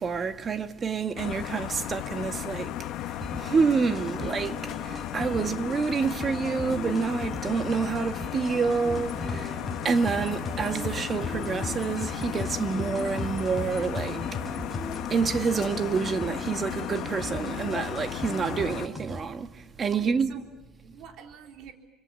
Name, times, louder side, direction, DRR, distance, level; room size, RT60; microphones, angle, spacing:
voice 1, 0.0-2.7 3.1-9.6 9.8-14.3 15.1-20.4, right 5 dB, 25° right, 1.6 m, -28 dB
sound 1, 1.2-18.9, left 13 dB, 60° left, 1.3 m, -35 dB
sound 2, 3.2-19.2, left 1 dB, 10° right, 5.7 m, -39 dB
sound 3, 8.9-15.1, left 3 dB, 10° left, 6.4 m, -37 dB
voice 2, 19.9-21.7, right 7 dB, 55° right, 3.6 m, -46 dB
28.5 x 26.0 x 7.6 m
cardioid pair, 150°, 0 cm